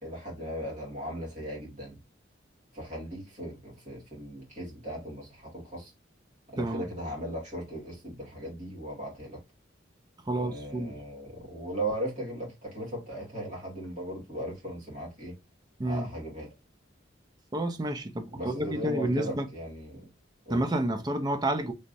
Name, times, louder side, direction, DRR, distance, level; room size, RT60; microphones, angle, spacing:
voice 1, 0.0-2.0 2.7-5.9 6.5-9.4 10.3-15.3 15.8-16.5 18.3-20.1 20.5-20.6, right 1 dB, 40° right, 1.9 m, -37 dB
voice 2, 10.2-11.0 15.8-16.1 17.5-19.5 20.5-21.7, right 1 dB, 20° right, 0.4 m, -29 dB
3.4 x 3.0 x 2.5 m
head